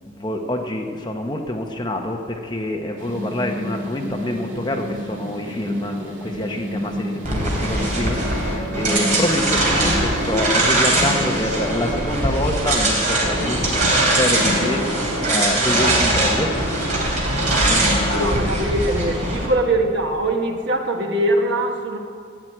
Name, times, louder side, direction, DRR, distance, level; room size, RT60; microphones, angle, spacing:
voice 1, 0.1-16.5 17.7-18.4, left 1 dB, 20° left, 3 dB, 1.0 m, -26 dB
sound 1, 3.0-10.3, equal, 85° right, 2.1 m, -31 dB
sound 2, 7.2-19.5, right 1 dB, 40° right, 3.2 m, -21 dB
voice 2, 18.0-22.0, right 1 dB, 55° right, 3 dB, 1.4 m, -22 dB
14.0 x 9.4 x 8.8 m, 2.3 s
head